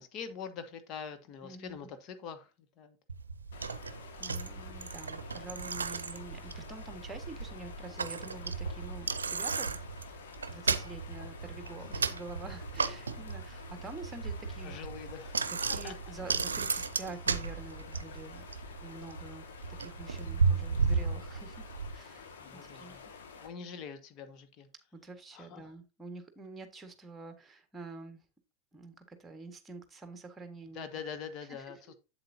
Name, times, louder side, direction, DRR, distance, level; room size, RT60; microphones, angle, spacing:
voice 1, 0.0-3.0 11.8-12.0 14.6-15.9 22.4-23.0 23.4-24.7 25.3-25.7 30.7-31.9, left 6 dB, 40° left, 1.3 m, -44 dB
voice 2, 1.4-1.9 4.2-9.7 10.5-14.8 15.5-18.4 18.8-19.5 19.8-21.6 21.9-23.0 24.9-28.2 28.7-30.9, right 3 dB, 15° right, 1.6 m, -47 dB
Bicycle, 3.1-21.9, right 4 dB, 80° right, 0.6 m, -35 dB
sound 1, 3.5-23.5, left 4 dB, 65° left, 1.8 m, -49 dB
8.1 x 7.8 x 2.8 m
figure-of-eight pair, 90°, 0 cm